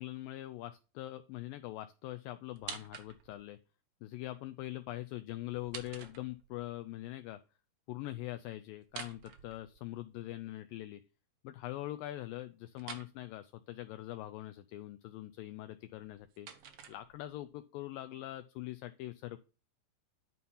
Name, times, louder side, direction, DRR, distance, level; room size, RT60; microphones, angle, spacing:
voice 1, 0.0-3.6 4.0-7.4 7.9-11.0 11.4-16.5 16.9-19.4, left 15 dB, 85° left, 10 dB, 2.0 m, -43 dB
sound 1, 2.5-3.5 5.5-6.7 8.8-10.1 12.8-13.1 15.8-17.5, right 7 dB, 85° right, 1.3 m, -48 dB
11.0 x 4.2 x 5.5 m, 0.34 s
omnidirectional pair, 4.5 m